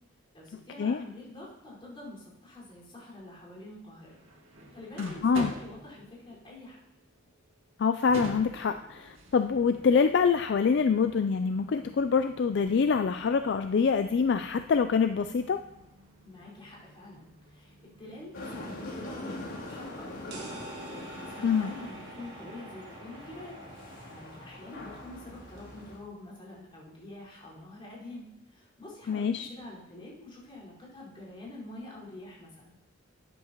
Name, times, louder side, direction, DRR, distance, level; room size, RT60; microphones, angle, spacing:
voice 1, 0.3-4.1 4.7-6.8 16.2-20.7 21.2-23.6 24.1-32.8, left 2 dB, 25° left, -6 dB, 4.8 m, -46 dB
sound 1, 4.0-22.6, right 1 dB, 75° right, 2.1 m, -48 dB
voice 2, 5.0-5.5 7.8-15.6 21.4-21.7 29.1-29.5, left 5 dB, 55° left, 9 dB, 0.3 m, -25 dB
sound 2, 18.3-26.0, left 1 dB, 90° left, 3.0 m, -43 dB
sound 3, 20.3-25.9, right 3 dB, 55° right, 1.6 m, -48 dB
13.0 x 9.9 x 3.0 m, 0.88 s
head